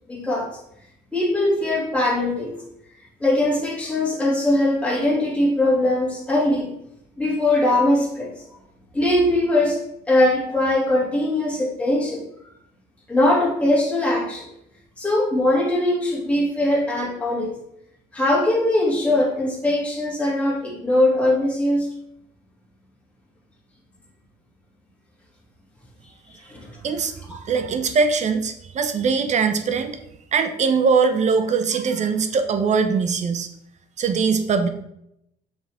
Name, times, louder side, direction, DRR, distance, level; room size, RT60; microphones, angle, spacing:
voice 1, 0.1-0.5 1.1-2.5 3.2-6.7 7.2-8.3 8.9-9.8 10.1-12.2 13.1-14.5 15.0-17.5 18.1-21.9 26.4-26.8, left 1 dB, 5° left, -4 dB, 2.8 m, -21 dB
voice 2, 26.8-30.0 30.3-33.5 34.0-34.7, right 5 dB, 45° right, 9 dB, 0.9 m, -21 dB
7.1 x 6.1 x 3.7 m, 0.78 s
cardioid pair, 110°, 17 cm